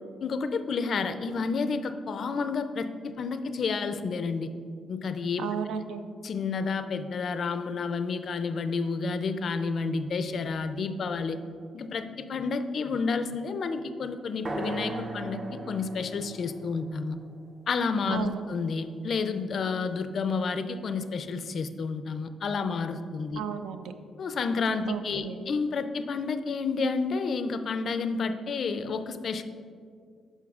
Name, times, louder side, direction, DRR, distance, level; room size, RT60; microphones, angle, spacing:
voice 1, 0.2-4.5 4.9-5.4 6.2-11.4 11.7-17.2 17.7-23.4 24.2-29.4, left 4 dB, 50° left, 10 dB, 0.4 m, -30 dB
voice 2, 5.4-6.0 18.1-18.4 23.4-23.9 24.9-25.4, right 7 dB, 90° right, 9 dB, 0.4 m, -34 dB
sound 1, 14.4-18.4, right 2 dB, 30° right, 0.6 m, -38 dB
10.5 x 5.5 x 2.4 m, 2.2 s
cardioid pair, 125°, 0 cm